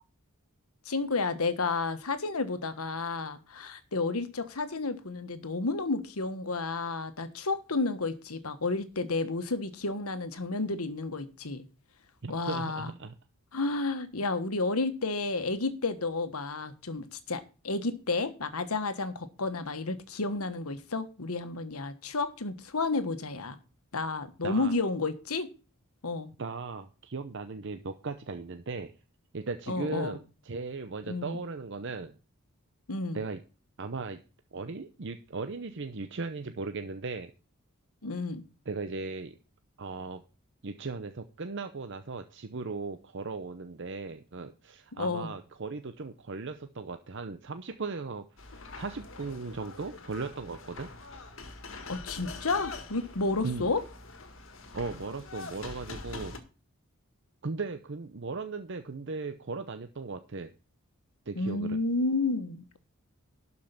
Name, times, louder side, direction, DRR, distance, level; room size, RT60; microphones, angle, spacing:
voice 1, 0.8-11.6 12.3-12.9 13.5-23.6 23.9-25.5 26.0-26.3 29.7-30.2 31.1-31.4 32.9-33.2 38.0-38.4 45.0-45.3 51.9-53.8 61.3-62.8, left 3 dB, 85° left, 11 dB, 1.3 m, -31 dB
voice 2, 12.2-13.1 24.4-24.7 26.4-28.9 29.3-32.2 33.1-33.4 33.8-34.2 34.5-37.3 38.7-39.4 39.8-40.2 40.6-48.2 48.8-50.9 53.4-53.7 54.7-56.3 57.4-60.5 61.3-61.8, right 4 dB, 55° right, 8 dB, 0.7 m, -37 dB
sound 1, 48.4-56.4, left 3 dB, 60° left, 1.8 m, -44 dB
12.0 x 5.5 x 5.8 m, 0.34 s
head